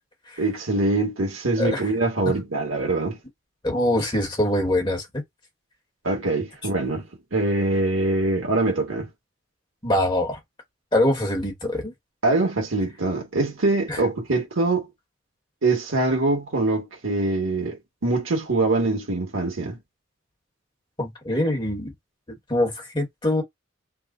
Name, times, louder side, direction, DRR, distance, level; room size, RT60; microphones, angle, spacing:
voice 1, 0.4-3.2 6.0-9.1 12.2-14.9 15.6-19.8, right 2 dB, 90° right, 1.5 m, -24 dB
voice 2, 3.6-5.2 9.8-10.4 10.9-11.9 13.9-14.0 21.0-21.9 22.5-23.4, left 1 dB, 25° left, 1.3 m, -23 dB
3.5 x 2.3 x 3.7 m
head